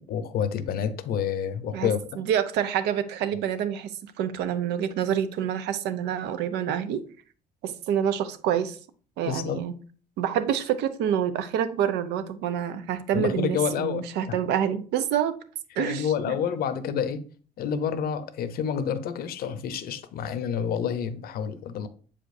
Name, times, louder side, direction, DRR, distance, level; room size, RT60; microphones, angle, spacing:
voice 1, 0.1-2.2 9.3-9.6 13.1-14.4 15.8-17.3 17.6-21.9, left 7 dB, 60° left, 0.7 m, -29 dB
voice 2, 2.2-7.0 7.6-8.8 9.2-9.7 10.2-15.3 15.8-16.3, right 9 dB, 85° right, 0.7 m, -27 dB
7.3 x 5.0 x 2.6 m
cardioid pair, 110°, 17 cm